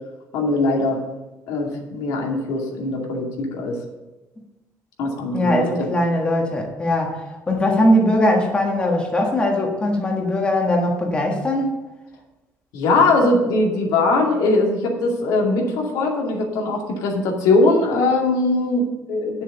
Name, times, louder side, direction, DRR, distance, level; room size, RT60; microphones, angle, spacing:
voice 1, 0.3-1.0 1.5-3.8 5.0-5.9 12.7-19.4, left 2 dB, 85° left, 0 dB, 2.3 m, -20 dB
voice 2, 5.3-7.2 7.5-11.7, left 1 dB, 15° left, 0 dB, 1.5 m, -20 dB
9.0 x 6.9 x 6.6 m, 1.1 s
cardioid pair, 155°, 6 cm